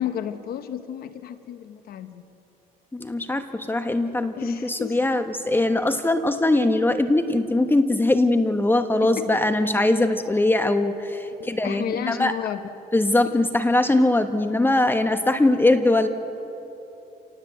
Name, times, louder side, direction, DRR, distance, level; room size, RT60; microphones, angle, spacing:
voice 1, 0.0-2.2 4.3-5.0 9.2-9.4 11.4-12.6 13.2-13.3, left 10 dB, 65° left, 10 dB, 1.0 m, -32 dB
voice 2, 2.9-12.3 12.9-16.1, left 2 dB, 10° left, 8 dB, 1.1 m, -21 dB
28.0 x 19.0 x 8.0 m, 3.0 s
cardioid pair, 110°, 17 cm